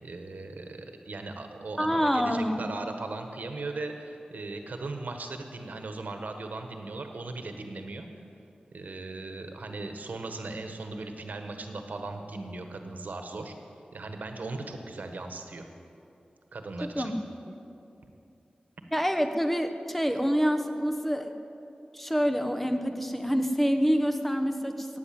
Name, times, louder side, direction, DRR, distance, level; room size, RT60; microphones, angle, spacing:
voice 1, 0.0-8.1 8.7-13.5 13.9-15.7 16.5-17.1 18.0-18.1, right 3 dB, 80° right, 5 dB, 1.4 m, -38 dB
voice 2, 1.8-2.6 16.8-17.1 18.9-21.3 21.9-25.0, equal, 5° left, 7 dB, 1.3 m, -27 dB
15.5 x 9.4 x 7.7 m, 2.7 s
cardioid pair, 45°, 3 cm